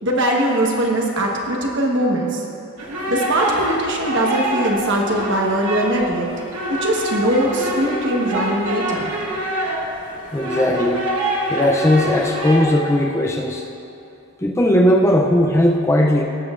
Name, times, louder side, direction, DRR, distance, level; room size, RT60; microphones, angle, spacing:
voice 1, 0.0-2.4 3.1-6.3 6.7-9.2, right 1 dB, 55° right, -1 dB, 1.3 m, -21 dB
sound 1, 2.8-12.6, equal, 80° right, 1.8 m, -26 dB
voice 2, 10.3-11.1 11.5-13.6 14.4-16.2, left 1 dB, 10° left, 1 dB, 0.5 m, -17 dB
17.5 x 7.1 x 2.5 m, 2.8 s
head